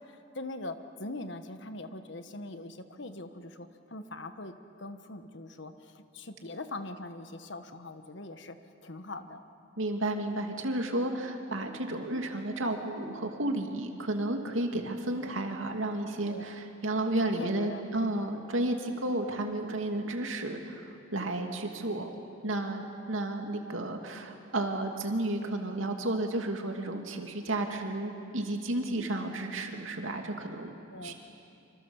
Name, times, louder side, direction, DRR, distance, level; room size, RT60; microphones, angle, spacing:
voice 1, 0.0-4.5 4.8-8.6 8.8-9.4 16.2-16.5 17.2-18.1 28.8-29.0 30.9-31.1, left 2 dB, 65° left, 9 dB, 1.4 m, -42 dB
voice 2, 9.8-22.1 22.4-30.7 31.0-31.1, right 1 dB, 85° right, 3 dB, 2.6 m, -32 dB
26.5 x 26.0 x 7.2 m, 2.6 s
head